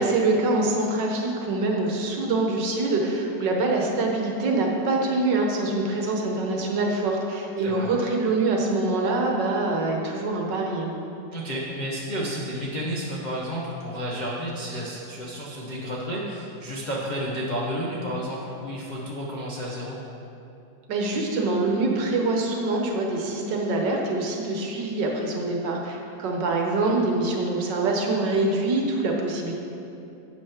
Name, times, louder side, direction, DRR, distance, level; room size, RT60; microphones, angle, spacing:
voice 1, 0.0-10.9 20.9-29.5, right 2 dB, 70° right, 0 dB, 1.6 m, -25 dB
voice 2, 11.3-20.0, equal, 40° left, -6 dB, 0.6 m, -31 dB
11.0 x 7.3 x 3.5 m, 2.8 s
omnidirectional pair, 2.1 m